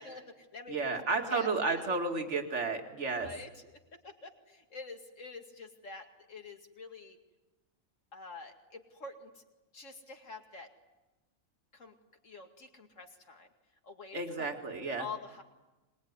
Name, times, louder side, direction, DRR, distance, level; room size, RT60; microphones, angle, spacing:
voice 1, 0.0-1.0 1.3-1.5 3.1-3.5 3.9-7.2 8.1-9.4 9.7-10.7 11.7-11.9 12.2-13.5 13.8-14.5 15.0-15.4, left 3 dB, 65° left, 4 dB, 2.6 m, -46 dB
voice 2, 0.7-3.3 14.1-15.1, right 3 dB, 55° right, 4 dB, 2.5 m, -32 dB
24.0 x 21.0 x 9.6 m, 1.1 s
omnidirectional pair, 1.4 m